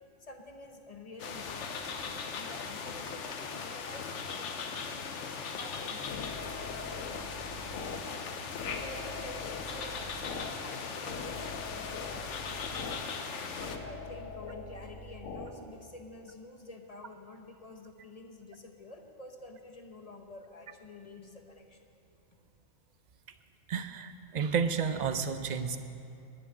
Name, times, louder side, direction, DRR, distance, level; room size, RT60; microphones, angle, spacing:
voice 1, 0.2-8.1 8.8-13.3 13.8-21.9, left 2 dB, 35° left, 3 dB, 0.8 m, -49 dB
sound 1, 1.2-13.8, left 5 dB, 65° left, 1.1 m, -39 dB
sound 2, 5.7-15.5, left 3 dB, 80° left, 1.3 m, -43 dB
voice 2, 23.7-25.8, right 6 dB, 50° right, 10 dB, 0.5 m, -31 dB
11.0 x 7.4 x 9.7 m, 2.6 s
omnidirectional pair, 1.3 m